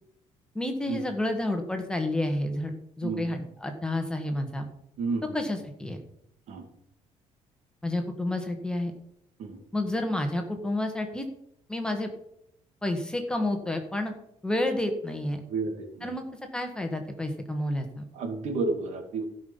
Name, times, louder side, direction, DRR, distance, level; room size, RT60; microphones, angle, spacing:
voice 1, 0.5-4.7 5.3-6.0 7.8-8.9 9.7-11.3 11.7-12.1 12.8-14.1 14.4-15.4 16.0-16.2 16.5-18.1, left 1 dB, 5° left, 5 dB, 1.6 m, -30 dB
voice 2, 15.5-16.1 18.1-19.3, right 3 dB, 70° right, 5 dB, 2.4 m, -31 dB
16.0 x 5.6 x 5.6 m, 0.75 s
cardioid pair, 135°, 12 cm